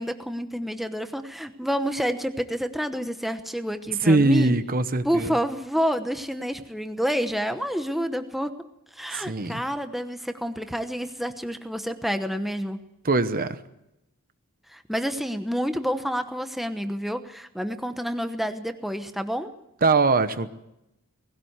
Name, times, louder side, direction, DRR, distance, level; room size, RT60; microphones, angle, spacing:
voice 1, 0.0-4.5 5.0-8.5 8.9-12.8 14.7-19.5, equal, ahead, 8 dB, 1.0 m, -28 dB
voice 2, 4.0-5.3 9.1-9.6 13.0-13.6 19.8-20.5, right 3 dB, 40° right, 11 dB, 1.0 m, -22 dB
19.5 x 17.0 x 8.1 m, 0.88 s
head